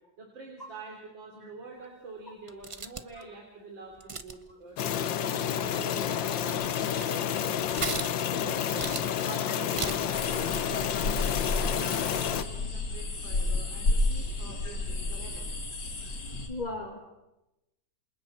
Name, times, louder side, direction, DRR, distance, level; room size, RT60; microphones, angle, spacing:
voice 1, 0.2-5.4 5.6-7.5 8.3-15.5, right 3 dB, 85° right, 0 dB, 3.9 m, -46 dB
sound 1, 2.5-3.2 4.0-4.5 5.8-5.9 6.3-7.2 7.8-8.4 8.8-9.2 9.8-10.2, right 4 dB, 55° right, 0.3 m, -36 dB
sound 2, 4.8-12.4, left 9 dB, 80° left, 1.7 m, -30 dB
sound 3, 10.1-16.5, left 2 dB, 65° left, 3.1 m, -31 dB
voice 2, 16.5-17.0, left 2 dB, 25° left, 0 dB, 2.2 m, -38 dB
28.0 x 27.0 x 4.3 m, 0.96 s
omnidirectional pair, 2.0 m